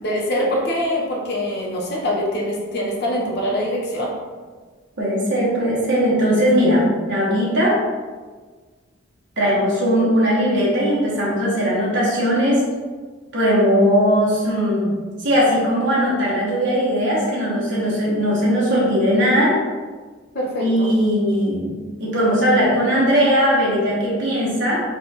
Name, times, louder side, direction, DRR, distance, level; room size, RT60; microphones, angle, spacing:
voice 1, 0.0-4.1 20.3-20.9, equal, 60° left, -3 dB, 1.0 m, -24 dB
voice 2, 5.0-7.8 9.4-12.6 13.3-19.5 20.6-24.8, equal, 65° right, -6 dB, 1.2 m, -19 dB
4.1 x 2.4 x 4.0 m, 1.4 s
head